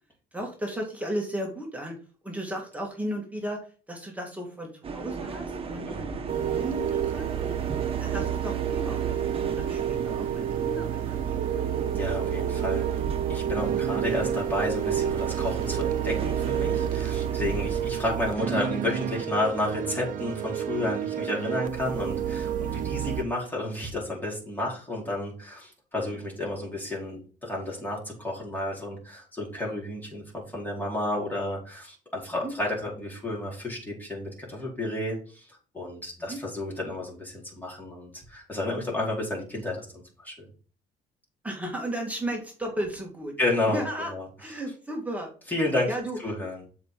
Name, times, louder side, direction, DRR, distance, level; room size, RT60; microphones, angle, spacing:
voice 1, 0.3-2.0 2.2-3.6 3.9-7.6 8.0-11.7 13.7-13.8 32.4-32.5 36.3-36.4 41.4-43.3 43.7-44.1 44.4-45.3 45.9-46.2, right 1 dB, 10° right, 0 dB, 2.2 m, -35 dB
sound 1, 4.8-17.9, right 4 dB, 35° right, 1.4 m, -36 dB
sound 2, 6.3-23.2, right 10 dB, 50° right, 0.8 m, -29 dB
voice 2, 11.9-12.8 13.3-30.2 30.5-40.5 43.4-43.8 44.1-44.3 45.5-45.9 46.2-46.6, left 1 dB, 10° left, -3 dB, 4.6 m, -31 dB
7.3 x 4.8 x 5.8 m, 0.38 s
cardioid pair, 110°, 17 cm